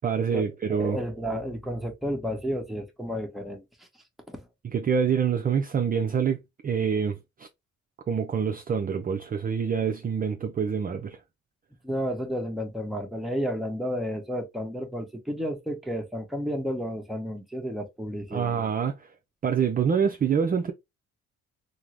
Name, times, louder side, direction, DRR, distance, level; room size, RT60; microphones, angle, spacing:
voice 1, 0.0-1.0 4.6-6.4 6.6-7.5 8.1-11.2 18.3-19.1 19.4-20.7, right 7 dB, 30° right, 0.4 m, -26 dB
voice 2, 0.7-3.6 4.3-4.5 11.8-18.6, equal, ahead, 0.9 m, -32 dB
3.6 x 2.0 x 3.0 m
cardioid pair, 90°, 30 cm